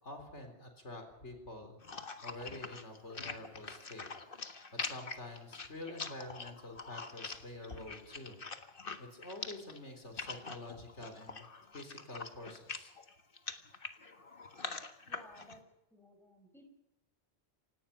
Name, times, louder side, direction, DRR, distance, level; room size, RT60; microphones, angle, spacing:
voice 1, 0.0-4.1 4.5-11.5 11.7-12.9, left 2 dB, 90° left, 5 dB, 4.0 m, -48 dB
sound 1, 1.8-15.6, left 4 dB, 50° left, 1.7 m, -44 dB
voice 2, 15.1-15.6 15.9-16.7, equal, ahead, 5 dB, 4.7 m, -57 dB
26.5 x 18.0 x 5.8 m, 0.96 s
omnidirectional pair, 1.2 m